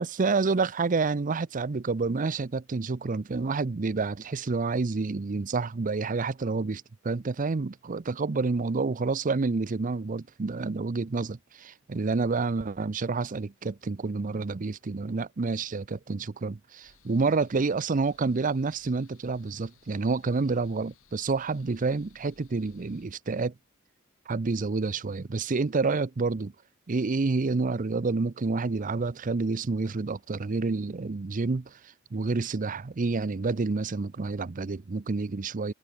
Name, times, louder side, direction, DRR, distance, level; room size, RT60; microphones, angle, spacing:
voice 1, 0.0-23.5 24.3-26.5 26.9-31.8 32.1-35.7, right 4 dB, 40° right, 0.6 m, -29 dB
sound 1, 16.8-23.1, left 4 dB, 90° left, 7.9 m, -61 dB
head